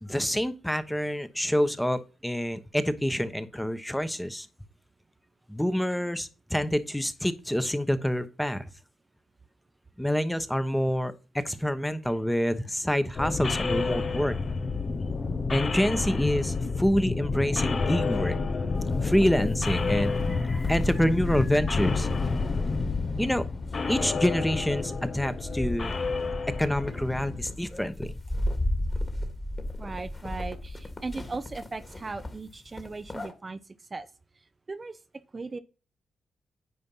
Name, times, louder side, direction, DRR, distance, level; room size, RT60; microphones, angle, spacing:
voice 1, 0.0-4.5 5.5-8.6 10.0-14.3 15.5-18.4 19.0-22.1 23.2-23.5 23.9-25.9 26.6-28.1, equal, 5° left, 1.1 m, -27 dB
sound 1, 13.1-27.5, left 4 dB, 50° left, 0.9 m, -29 dB
sound 2, 18.8-33.3, left 1 dB, 30° left, 2.2 m, -36 dB
voice 2, 29.8-34.1 34.3-35.0 35.3-35.6, right 3 dB, 35° right, 0.7 m, -38 dB
9.6 x 4.3 x 5.5 m
cardioid pair, 65°, 0 cm